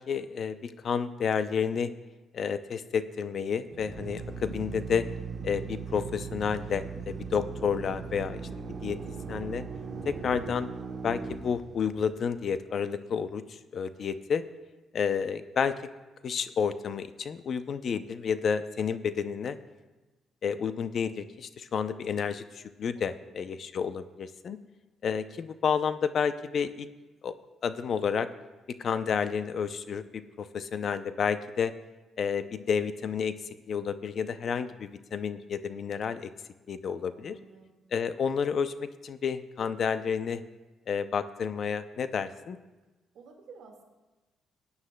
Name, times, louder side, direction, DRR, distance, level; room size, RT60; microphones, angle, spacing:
voice 1, 0.0-1.9 2.3-5.0 5.4-8.4 8.8-9.0 9.3-9.6 10.1-10.7 11.0-14.4 14.9-15.7 16.2-19.6 20.4-24.6 25.0-26.9 27.2-27.3 27.6-28.3 28.8-31.7 32.2-33.4 33.7-36.3 36.7-37.4 37.9-40.4 40.9-42.6, left 6 dB, 55° left, 12 dB, 0.5 m, -30 dB
Drill, 3.7-12.3, right 5 dB, 50° right, 0.9 m, -39 dB
voice 2, 22.9-23.6 37.1-37.8 43.1-43.8, right 5 dB, 75° right, 2 dB, 1.8 m, -54 dB
19.0 x 9.6 x 2.2 m, 1.1 s
cardioid pair, 90°, 0 cm